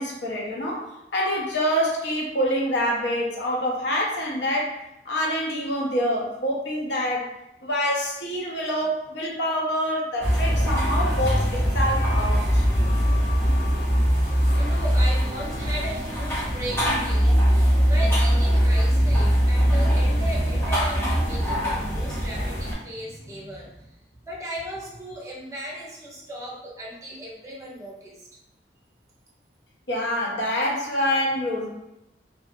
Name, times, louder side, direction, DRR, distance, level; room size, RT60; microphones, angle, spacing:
voice 1, 0.0-4.8 5.0-7.3 7.6-12.6 29.9-31.7, equal, 85° left, -2 dB, 0.7 m, -26 dB
sound 1, 10.2-22.7, equal, 15° left, 0.8 m, -21 dB
voice 2, 14.5-23.9 24.3-28.3, right 1 dB, 20° right, -4 dB, 0.6 m, -36 dB
2.7 x 2.4 x 2.6 m, 0.89 s
head